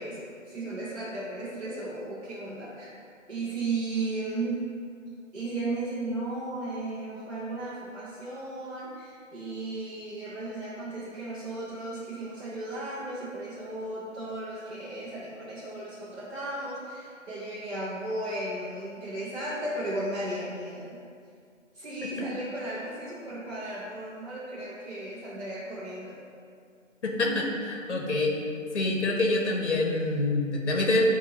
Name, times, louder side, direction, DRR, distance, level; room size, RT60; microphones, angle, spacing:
voice 1, 0.0-2.9 3.3-4.6 5.3-21.0 21.7-26.2, right 2 dB, 55° right, -9 dB, 0.8 m, -35 dB
voice 2, 27.0-28.3 28.7-31.0, left 2 dB, 60° left, 1 dB, 0.7 m, -26 dB
6.6 x 2.6 x 2.8 m, 2.2 s
figure-of-eight pair, 170°, 39 cm